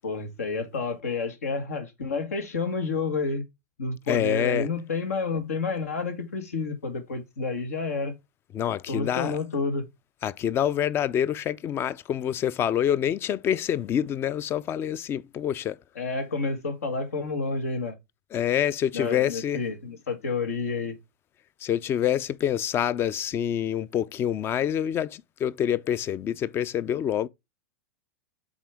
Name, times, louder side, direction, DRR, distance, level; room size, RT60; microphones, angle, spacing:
voice 1, 0.0-3.4 3.8-8.1 8.9-9.8 16.0-18.0 18.9-21.0, left 4 dB, 80° left, 1.7 m, -29 dB
voice 2, 4.1-4.7 8.5-9.4 10.2-15.8 18.3-19.6 21.6-27.3, left 10 dB, 30° left, 0.4 m, -26 dB
7.2 x 4.3 x 3.5 m
hypercardioid pair, 105°, 8 cm